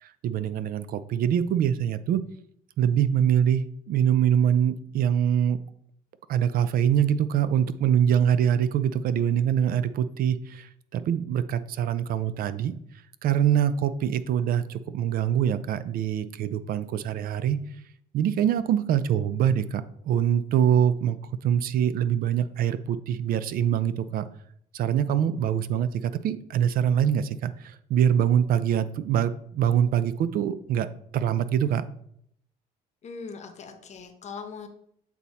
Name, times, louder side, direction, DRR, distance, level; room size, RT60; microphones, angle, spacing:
voice 1, 0.0-2.2 2.8-5.6 6.3-12.7 13.2-17.6 18.1-24.3 24.7-30.9 31.1-31.8, right 9 dB, 60° right, 14 dB, 0.4 m, -24 dB
voice 2, 33.0-34.7, left 5 dB, 40° left, 6 dB, 0.9 m, -40 dB
8.1 x 2.8 x 4.1 m, 0.69 s
cardioid pair, 110°, 17 cm